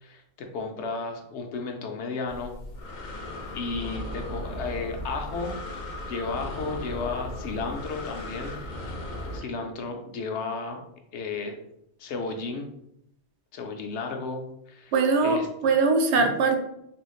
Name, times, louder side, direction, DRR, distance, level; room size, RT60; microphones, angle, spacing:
voice 1, 0.0-2.5 3.0-3.2 3.5-5.5 6.0-8.5 9.3-10.8 11.1-11.6 12.0-12.7 13.5-14.4 14.7-14.9 15.2-15.5 16.1-16.3, left 4 dB, 90° left, 4 dB, 0.9 m, -33 dB
Breathing, 2.3-9.4, left 1 dB, 50° left, 0.6 m, -36 dB
voice 2, 14.9-16.6, right 4 dB, 80° right, 4 dB, 0.9 m, -22 dB
3.4 x 3.0 x 2.4 m, 0.78 s
omnidirectional pair, 1.1 m